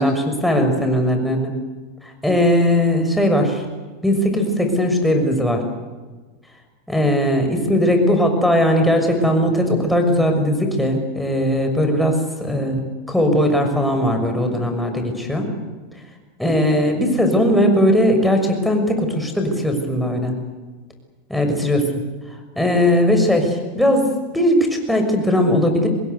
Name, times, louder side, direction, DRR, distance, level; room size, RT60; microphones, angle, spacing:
voice 1, 0.0-1.5 2.0-3.6 4.0-5.7 6.9-15.5 16.4-20.3 21.3-21.9 22.6-25.9, equal, ahead, 4 dB, 6.4 m, -18 dB
26.5 x 20.5 x 8.2 m, 1.3 s
supercardioid pair, 125°, 0 cm